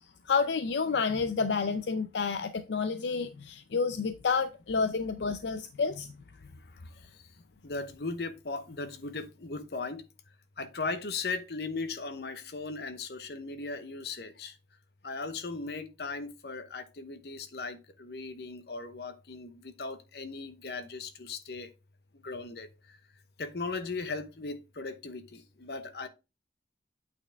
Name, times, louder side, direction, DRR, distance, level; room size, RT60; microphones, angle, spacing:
voice 1, 0.3-6.1, left 5 dB, 80° left, 0.5 m, -29 dB
voice 2, 6.6-7.3 7.6-10.0 10.6-14.6 15.0-21.7 22.1-23.0 23.4-26.1, left 3 dB, 65° left, 0.9 m, -38 dB
8.6 x 4.3 x 3.4 m
head